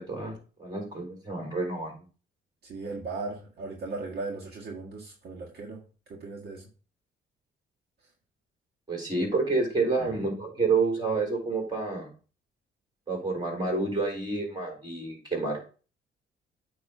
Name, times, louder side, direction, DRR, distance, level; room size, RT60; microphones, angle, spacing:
voice 1, 0.0-2.0 8.9-12.1 13.1-15.6, right 3 dB, 20° right, 2 dB, 3.6 m, -29 dB
voice 2, 2.6-5.8 6.1-6.7 10.0-10.2, right 3 dB, 55° right, -2 dB, 1.7 m, -37 dB
8.7 x 3.1 x 5.5 m, 0.36 s
cardioid pair, 90°, 20 cm